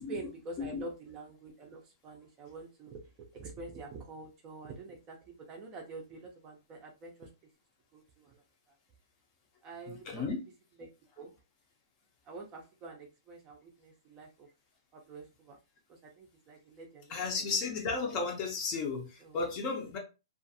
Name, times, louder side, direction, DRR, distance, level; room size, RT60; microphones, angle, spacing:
voice 1, 0.0-5.2 5.5-7.3 7.9-8.4 9.6-10.2 10.8-10.9 11.2-11.3 12.3-14.5 14.9-15.6 15.9-17.5 19.2-19.4, right 3 dB, 20° right, 0.5 m, -47 dB
voice 2, 9.9-10.4 17.1-20.0, left 4 dB, 25° left, 0.6 m, -34 dB
2.4 x 2.4 x 2.7 m
hypercardioid pair, 160°, 3 cm